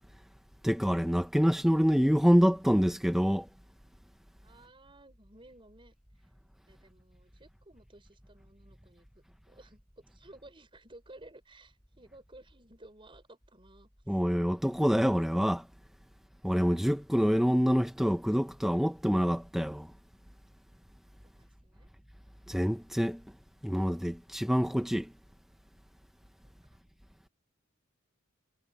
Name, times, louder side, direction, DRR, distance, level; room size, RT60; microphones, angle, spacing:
voice 1, 0.6-3.5 14.1-15.7 16.4-19.9 22.5-23.2 23.6-25.1, equal, ahead, 0.7 m, -26 dB
voice 2, 4.4-5.9 6.7-13.9 21.4-21.9 26.4-26.8, right 1 dB, 25° right, 5.2 m, -56 dB
head